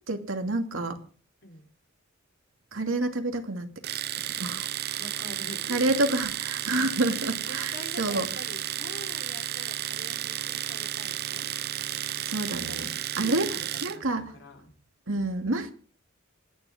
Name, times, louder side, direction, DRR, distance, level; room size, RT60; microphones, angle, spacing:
voice 1, 0.1-1.0 2.7-3.7 4.4-4.7 5.7-7.7 8.0-8.3 12.2-12.9 13.2-13.5 13.8-14.3 15.1-15.7, right 2 dB, 80° right, 2.6 m, -28 dB
Domestic sounds home sounds, 3.8-14.0, right 12 dB, 50° right, 0.6 m, -33 dB
voice 2, 5.0-6.1 7.5-11.5 12.6-14.7, left 2 dB, 65° left, 4.4 m, -45 dB
27.5 x 11.0 x 3.7 m
head